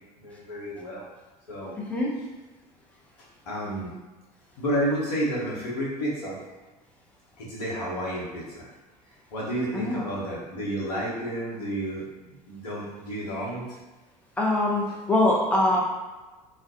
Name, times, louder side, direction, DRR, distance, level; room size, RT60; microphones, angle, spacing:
voice 1, 0.2-1.1 1.5-1.8 3.5-3.9 4.6-6.4 7.4-8.7 9.3-13.6, equal, 75° left, -5 dB, 0.8 m, -31 dB
voice 2, 1.7-2.1 9.7-10.0 14.4-15.8, left 1 dB, 5° left, -3 dB, 0.6 m, -23 dB
2.4 x 2.1 x 2.6 m, 1.2 s
figure-of-eight pair, 70°, 21 cm